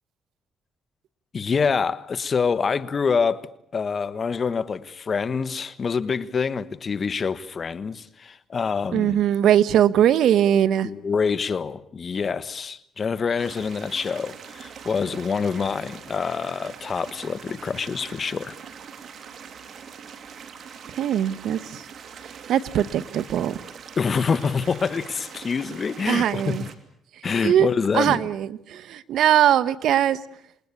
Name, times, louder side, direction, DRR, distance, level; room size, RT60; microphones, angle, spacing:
voice 1, 1.3-3.5 3.7-9.2 10.8-18.5 24.0-26.7 27.2-28.2, left 5 dB, 40° left, 1.2 m, -26 dB
voice 2, 8.9-10.9 20.9-21.9 22.2-23.6 26.1-26.6 27.1-27.7 27.9-30.2, right 10 dB, 75° right, 1.0 m, -21 dB
sound 1, 13.4-26.7, right 7 dB, 60° right, 2.8 m, -42 dB
27.5 x 20.5 x 8.4 m
cardioid pair, 90°, 0 cm